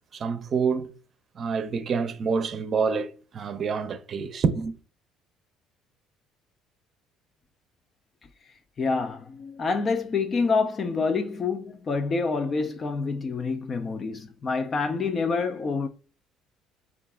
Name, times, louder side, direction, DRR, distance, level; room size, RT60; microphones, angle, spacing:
voice 1, 0.1-0.9 1.3-4.8, right 5 dB, 45° right, 0.5 m, -27 dB
voice 2, 8.8-15.9, left 4 dB, 40° left, 0.4 m, -27 dB
4.5 x 2.4 x 3.6 m
supercardioid pair, 85°, 0 cm